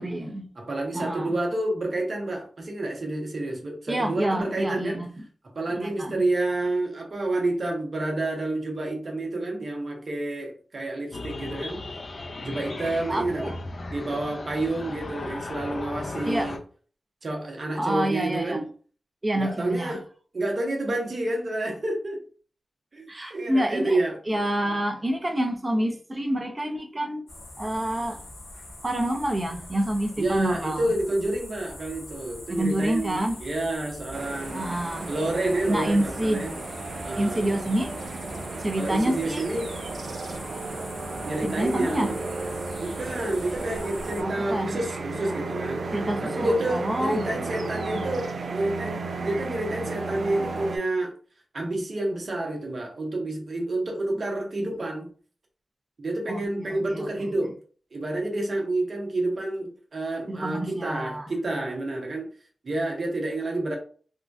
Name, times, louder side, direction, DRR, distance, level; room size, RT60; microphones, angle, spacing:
voice 1, 0.0-0.5 0.9-1.4 3.9-5.1 5.8-6.3 13.1-13.6 16.3-16.5 17.8-18.6 19.2-20.0 23.1-24.0 24.3-27.2 27.6-28.3 28.8-30.9 32.5-33.4 34.5-35.1 35.7-36.5 37.2-38.0 38.6-39.4 41.4-42.1 44.2-44.8 45.9-48.1 56.3-57.3 60.3-61.3, right 1 dB, 30° right, 0.7 m, -28 dB
voice 2, 0.6-5.0 5.5-11.8 12.4-13.5 13.9-16.6 17.2-18.7 19.3-20.0 20.3-22.2 22.9-24.8 30.2-34.7 35.0-36.6 37.0-37.6 38.8-39.7 41.2-42.2 42.8-45.8 46.2-51.1 51.5-55.1 56.0-57.5 57.9-62.3 62.6-63.8, right 2 dB, 60° right, 1.0 m, -29 dB
sound 1, 11.1-16.6, left 2 dB, 60° left, 0.5 m, -36 dB
sound 2, 27.3-44.2, left 1 dB, 85° left, 1.4 m, -43 dB
sound 3, 34.1-50.8, right 3 dB, 80° right, 0.5 m, -34 dB
3.6 x 2.3 x 2.5 m
cardioid pair, 45°, 0 cm